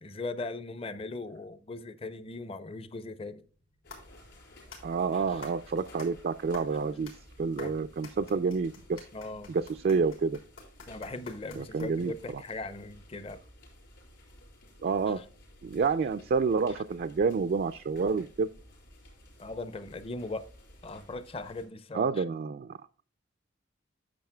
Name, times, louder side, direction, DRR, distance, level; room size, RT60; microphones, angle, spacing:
voice 1, 0.0-3.4 5.1-5.4 7.6-7.7 9.1-9.5 10.9-13.4 15.1-15.2 19.4-20.4 20.8-22.2, left 3 dB, 30° left, 0.6 m, -39 dB
sound 1, 3.4-12.2, left 4 dB, 85° left, 3.7 m, -50 dB
sound 2, 3.8-21.7, left 1 dB, 60° left, 4.3 m, -55 dB
voice 2, 4.8-7.1 7.4-9.1 9.5-10.4 11.6-12.1 14.8-15.2 15.6-18.5 21.9-22.8, right 5 dB, 50° right, 0.3 m, -28 dB
10.5 x 7.1 x 2.2 m
head